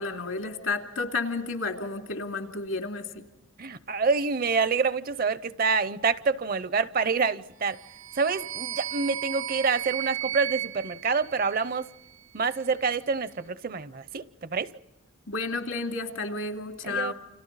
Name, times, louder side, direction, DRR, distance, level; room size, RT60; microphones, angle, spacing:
voice 1, 0.0-3.2 15.3-17.1, left 3 dB, 85° left, 2.6 m, -31 dB
voice 2, 3.6-7.8 8.2-11.9 12.3-14.7 16.8-17.1, right 5 dB, 45° right, 0.6 m, -27 dB
sound 1, 7.7-12.0, right 13 dB, 75° right, 1.0 m, -35 dB
29.5 x 27.0 x 4.1 m
head